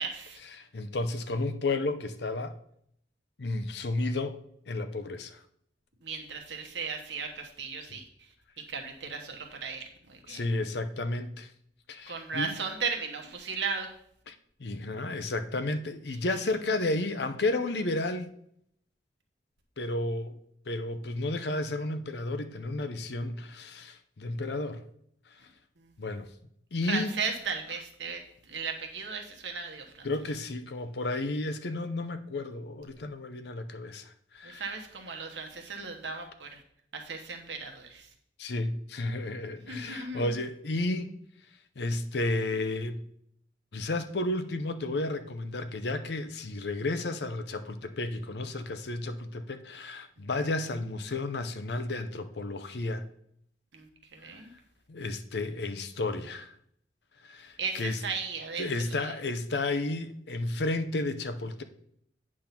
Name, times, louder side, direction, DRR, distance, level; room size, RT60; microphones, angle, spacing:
voice 1, 0.0-0.4 6.0-8.0 8.7-10.4 12.1-13.9 25.8-25.9 26.8-28.2 28.5-30.1 34.4-36.6 36.9-38.1 39.6-40.3 53.7-54.5 57.6-58.7 59.0-59.1, right 5 dB, 80° right, 3 dB, 1.2 m, -36 dB
voice 2, 0.6-2.5 3.4-4.4 4.7-5.4 7.9-8.0 10.3-11.5 11.9-12.6 14.3-18.3 19.8-20.4 20.7-24.8 25.3-25.4 26.0-26.3 26.7-27.1 30.0-34.7 35.2-35.3 38.4-41.1 41.8-43.0 43.7-53.1 54.2-54.4 54.9-56.5 57.2-58.0 58.6-61.6, left 2 dB, 65° left, 10 dB, 0.6 m, -32 dB
8.7 x 3.7 x 5.8 m, 0.69 s
head